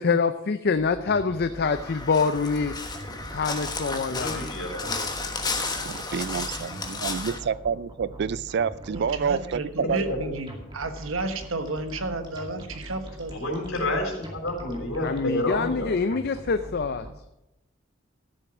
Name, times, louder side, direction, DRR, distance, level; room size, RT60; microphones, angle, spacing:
voice 1, 0.0-2.7 3.3-4.4 15.0-17.0, left 4 dB, 50° left, 10 dB, 0.5 m, -25 dB
sound 1, 0.8-17.1, right 1 dB, 25° right, 2.4 m, -42 dB
Crow, 1.5-7.4, left 3 dB, 20° left, 1.3 m, -33 dB
voice 2, 4.1-5.0 10.1-10.3 13.3-15.9, left 1 dB, 80° left, 1 dB, 3.9 m, -29 dB
voice 3, 5.8-10.0, right 6 dB, 55° right, 19 dB, 0.4 m, -28 dB
voice 4, 8.9-13.7, right 2 dB, 80° right, 8 dB, 1.3 m, -32 dB
13.5 x 7.5 x 6.1 m, 0.90 s
head